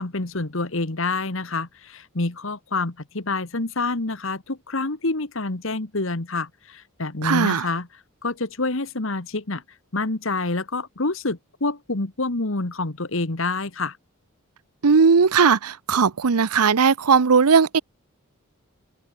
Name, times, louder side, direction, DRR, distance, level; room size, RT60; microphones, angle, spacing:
voice 1, 0.0-7.9 8.2-9.6 9.9-14.0, left 3 dB, 60° left, 1.6 m, -27 dB
voice 2, 7.2-7.7 14.8-17.8, right 5 dB, 85° right, 0.7 m, -18 dB
head